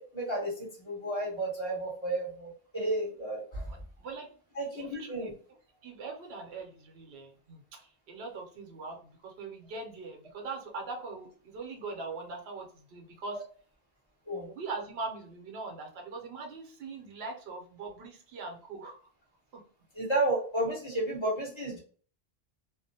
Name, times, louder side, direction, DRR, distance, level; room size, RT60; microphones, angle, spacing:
voice 1, 0.1-3.6 4.5-5.3 14.3-14.5 19.9-21.8, right 1 dB, 30° left, -4 dB, 1.1 m, -32 dB
voice 2, 3.7-4.3 4.7-5.3 5.8-13.4 14.5-19.0 19.5-19.6, right 3 dB, 80° right, 1 dB, 0.9 m, -41 dB
2.4 x 2.0 x 2.7 m, 0.43 s
omnidirectional pair, 1.0 m